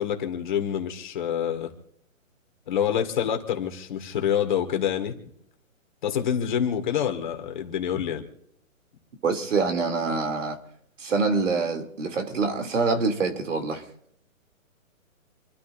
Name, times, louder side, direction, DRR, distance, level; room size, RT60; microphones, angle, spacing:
voice 1, 0.0-1.7 2.7-5.2 6.0-8.2, left 9 dB, 35° left, 2.0 m, -27 dB
voice 2, 9.2-10.6 11.0-13.8, right 4 dB, 60° right, 3.0 m, -25 dB
27.5 x 13.0 x 2.6 m
hypercardioid pair, 165°, 41 cm